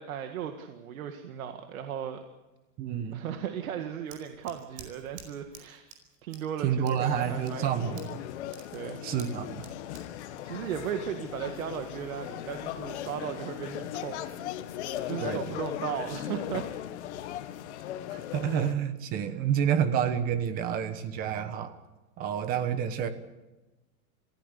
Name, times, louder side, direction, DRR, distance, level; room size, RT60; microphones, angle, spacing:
voice 1, 0.0-2.2 3.1-5.9 6.2-8.2 8.7-9.0 10.2-14.4 14.8-16.7, right 9 dB, 70° right, 6 dB, 2.0 m, -36 dB
voice 2, 2.8-3.2 6.6-8.2 9.0-9.6 15.2-15.6 18.1-21.7 22.2-23.1, right 8 dB, 20° right, 11 dB, 1.2 m, -29 dB
Scissors, 3.6-11.3, right 6 dB, 40° right, 4.9 m, -52 dB
sound 1, 7.0-18.7, left 12 dB, 50° left, 1.6 m, -38 dB
27.5 x 16.0 x 8.3 m, 1.1 s
supercardioid pair, 175°, 43 cm